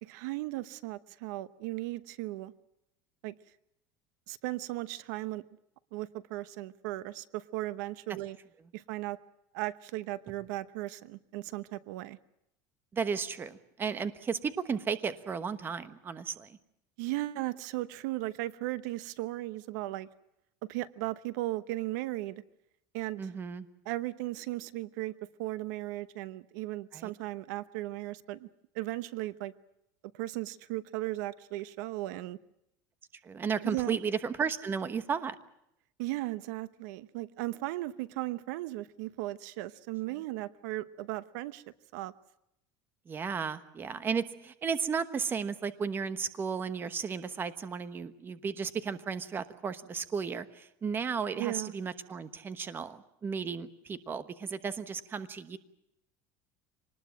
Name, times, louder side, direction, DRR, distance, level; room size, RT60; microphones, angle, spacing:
voice 1, 0.0-2.5 3.2-3.3 4.3-5.4 5.9-8.4 8.7-9.2 9.5-12.2 17.0-20.1 20.7-22.4 22.9-23.3 23.8-25.1 25.4-28.5 28.7-29.5 30.1-32.4 33.6-34.0 36.0-41.6 41.9-42.1 51.4-51.7, right 17 dB, 80° right, 15 dB, 1.0 m, -36 dB
voice 2, 12.9-16.6 23.2-23.7 26.9-27.1 33.2-35.4 40.1-40.2 43.1-55.6, right 6 dB, 20° right, 12 dB, 1.2 m, -34 dB
25.0 x 20.0 x 7.5 m, 0.80 s
cardioid pair, 150°, 10 cm